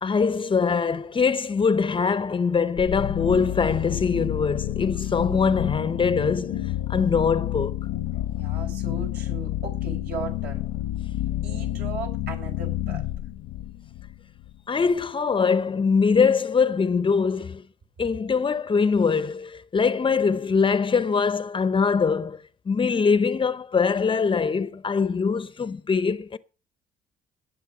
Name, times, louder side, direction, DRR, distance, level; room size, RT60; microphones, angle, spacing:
voice 1, 0.0-7.8 14.7-17.6 18.0-22.4 22.7-26.4, left 5 dB, 30° left, 0.8 m, -23 dB
sound 1, 2.8-14.5, left 14 dB, 90° left, 1.0 m, -29 dB
voice 2, 8.4-10.7 11.4-13.0, right 5 dB, 65° right, 5.9 m, -37 dB
18.5 x 7.9 x 4.9 m
cardioid pair, 105°, 18 cm